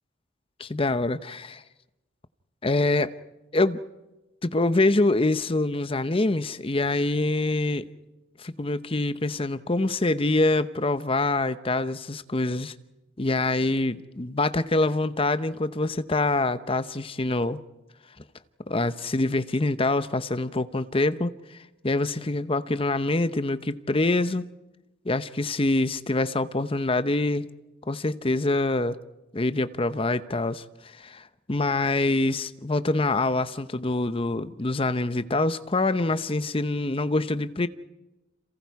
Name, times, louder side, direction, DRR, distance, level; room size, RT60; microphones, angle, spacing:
voice 1, 0.6-1.6 2.6-3.1 3.5-3.8 4.4-7.9 8.4-12.7 13.2-17.6 18.7-21.3 21.8-24.5 25.0-27.5 27.9-29.0 29.3-30.6 31.0-31.2 31.5-37.7, left 2 dB, 30° left, 0.8 m, -25 dB
29.5 x 27.5 x 4.7 m
head